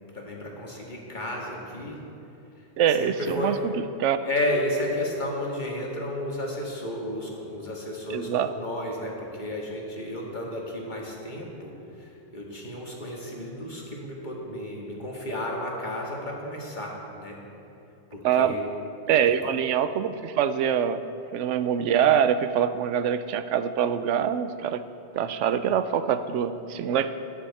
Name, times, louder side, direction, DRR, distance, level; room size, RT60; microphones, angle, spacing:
voice 1, 0.1-2.0 3.0-3.6 4.2-17.4 18.1-18.6 19.4-19.5, left 1 dB, 40° left, -2 dB, 2.0 m, -32 dB
voice 2, 2.8-3.7 4.0-4.3 8.1-8.5 18.2-18.6 19.1-21.0 21.3-24.8 25.1-27.1, right 8 dB, 80° right, 12 dB, 0.9 m, -24 dB
15.0 x 9.8 x 4.2 m, 2.7 s
omnidirectional pair, 1.2 m